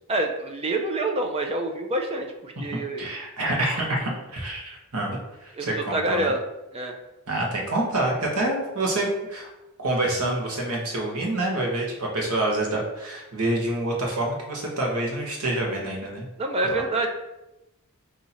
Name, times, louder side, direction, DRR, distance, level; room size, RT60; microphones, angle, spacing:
voice 1, 0.1-3.1 5.5-6.4 6.7-7.0 16.4-17.1, right 2 dB, 25° right, 3 dB, 0.4 m, -27 dB
voice 2, 3.0-6.3 7.3-9.5 9.8-16.3 16.6-16.8, right 1 dB, 85° right, -1 dB, 1.1 m, -27 dB
4.2 x 2.8 x 4.1 m, 0.96 s
head